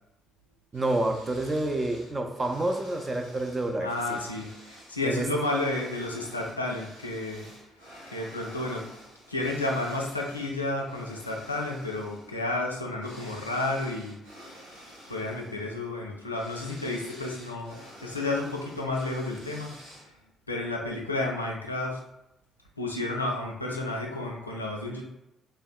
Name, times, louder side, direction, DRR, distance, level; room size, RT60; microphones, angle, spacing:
voice 1, 0.7-4.2 5.0-5.3, right 2 dB, 25° right, 5 dB, 0.4 m, -29 dB
sound 1, 0.7-20.3, equal, 85° right, 0.7 m, -50 dB
voice 2, 3.8-7.5 8.1-8.9 9.3-14.2 15.1-19.7 20.5-22.0 22.8-25.1, left 2 dB, 90° left, -1 dB, 0.3 m, -31 dB
3.4 x 2.1 x 2.2 m, 0.87 s
figure-of-eight pair, 45°, 0 cm